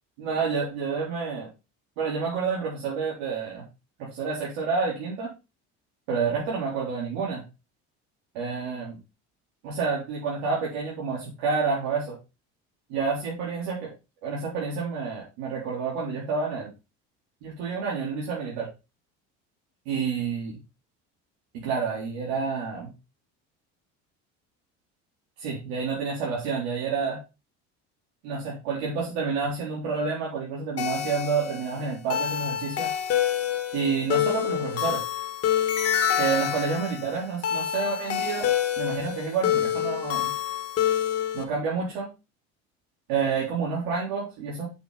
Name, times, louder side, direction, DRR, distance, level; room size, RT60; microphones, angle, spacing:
voice 1, 0.2-1.5 2.0-3.7 4.0-5.3 6.1-7.4 8.3-9.0 9.6-12.2 12.9-13.9 14.2-16.7 17.4-18.7 19.9-20.6 21.5-22.9 25.4-27.2 28.2-32.9 33.7-35.0 36.2-40.3 41.3-42.1 43.1-44.7, right 5 dB, 90° right, -5 dB, 4.0 m, -29 dB
sound 1, 30.8-41.4, left 10 dB, 50° left, 1.9 m, -27 dB
8.4 x 6.3 x 4.2 m, 0.27 s
supercardioid pair, 100°, 31 cm